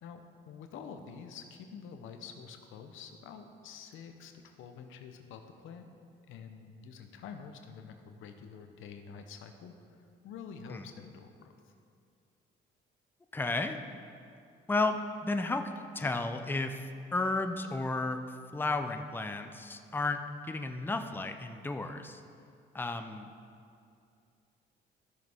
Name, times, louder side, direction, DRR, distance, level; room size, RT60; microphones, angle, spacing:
voice 1, 0.0-5.9 6.3-11.7, left 6 dB, 85° left, 6 dB, 0.7 m, -48 dB
voice 2, 13.3-13.8 14.7-18.2 18.5-22.2 22.7-23.3, left 2 dB, 10° left, 6 dB, 0.5 m, -33 dB
13.5 x 6.3 x 3.6 m, 2.4 s
cardioid pair, 90°, 20 cm